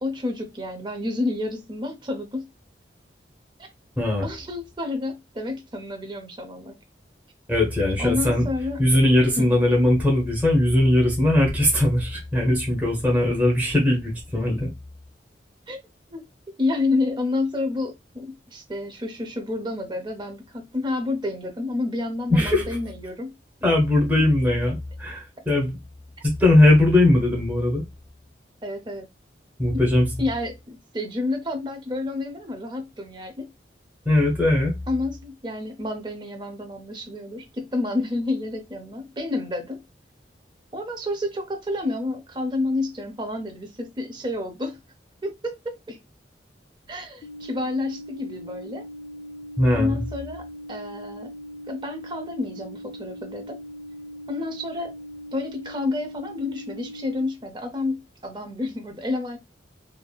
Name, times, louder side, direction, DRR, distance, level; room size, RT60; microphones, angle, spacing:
voice 1, 0.0-2.5 3.6-3.7 4.2-6.7 8.0-8.8 9.4-9.5 15.7-15.8 16.1-16.2 16.6-23.3 28.6-29.1 29.7-29.9 30.2-33.5 34.9-39.8 40.7-44.8 45.2-46.0 46.9-48.8 49.7-51.3 51.7-53.6 54.3-54.9 55.3-59.4, left 2 dB, 25° right, 0.5 m, -29 dB
voice 2, 4.0-4.3 7.5-8.4 8.8-14.7 22.3-22.7 23.6-25.8 26.2-27.8 29.6-30.1 34.0-34.7 49.6-50.0, left 1 dB, 10° right, 0.9 m, -20 dB
sound 1, 47.2-57.2, equal, 50° left, 0.5 m, -40 dB
3.2 x 2.5 x 2.3 m
head